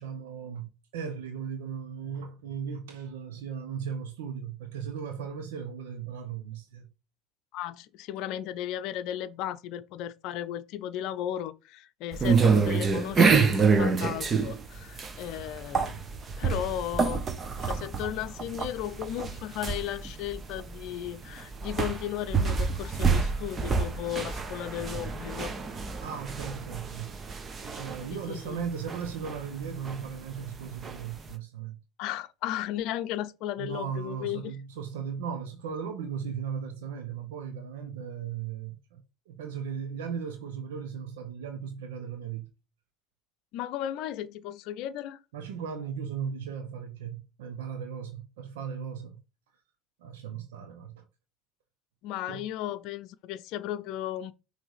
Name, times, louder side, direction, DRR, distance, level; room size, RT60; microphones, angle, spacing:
voice 1, 0.0-6.9 26.0-27.1 27.8-31.8 33.6-42.5 45.3-49.2 50.0-51.1 52.3-52.5, right 7 dB, 70° right, 1.0 m, -37 dB
voice 2, 7.5-16.0 16.4-17.3 17.6-25.5 28.1-28.6 32.0-34.5 43.5-45.2 52.0-54.3, left 11 dB, 55° left, 0.6 m, -35 dB
sound 1, 12.1-31.3, right 5 dB, 30° right, 1.1 m, -28 dB
6.3 x 3.4 x 4.8 m
figure-of-eight pair, 65°, 0 cm